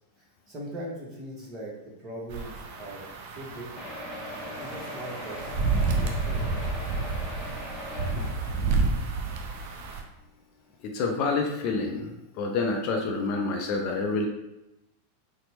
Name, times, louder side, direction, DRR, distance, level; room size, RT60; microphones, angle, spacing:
voice 1, 0.2-3.0 3.3-4.1 4.4-5.6 5.9-7.1, right 1 dB, 30° right, -3 dB, 1.1 m, -41 dB
sound 1, 2.3-10.0, right 3 dB, 50° right, 0.5 m, -30 dB
sound 2, 3.7-9.2 9.9-10.0 10.2-10.3 10.7-10.8, left 1 dB, 5° left, 0.9 m, -40 dB
voice 2, 10.8-14.3, left 3 dB, 40° left, 2 dB, 0.4 m, -28 dB
4.1 x 2.0 x 2.9 m, 0.92 s
figure-of-eight pair, 90°, 0 cm